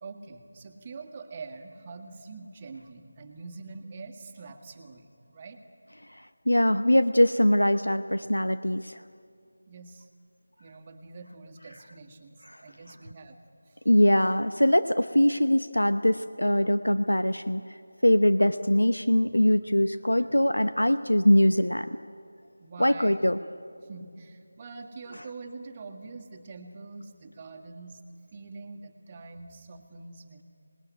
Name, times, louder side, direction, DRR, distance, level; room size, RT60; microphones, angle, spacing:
voice 1, 0.0-5.6 9.7-10.1 10.6-13.4 13.7-13.8 22.6-23.2 23.8-28.0 28.3-30.4, right 3 dB, 25° right, 2 dB, 1.9 m, -44 dB
voice 2, 6.5-9.0 12.5-12.6 13.9-17.6 18.0-21.9 22.8-23.4, left 1 dB, 90° left, 11 dB, 0.9 m, -22 dB
25.5 x 20.5 x 9.4 m, 2.4 s
figure-of-eight pair, 165°, 0 cm